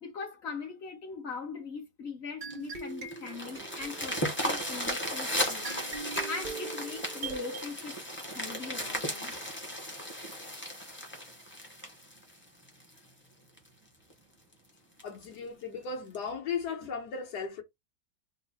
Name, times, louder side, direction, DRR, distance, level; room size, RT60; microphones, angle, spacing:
voice 1, 0.0-5.7 6.3-8.0 8.3-9.3 12.5-12.6 16.8-16.9, left 5 dB, 45° left, 1.0 m, -41 dB
sound 1, 2.4-7.7, right 4 dB, 65° right, 0.4 m, -42 dB
sound 2, 2.5-13.0 13.6-13.7 14.1-14.2 14.5-14.6 15.0-15.3 16.1-16.2, equal, 10° left, 0.6 m, -35 dB
voice 2, 15.0-17.6, left 5 dB, 70° left, 1.6 m, -36 dB
3.8 x 2.0 x 4.0 m
omnidirectional pair, 1.8 m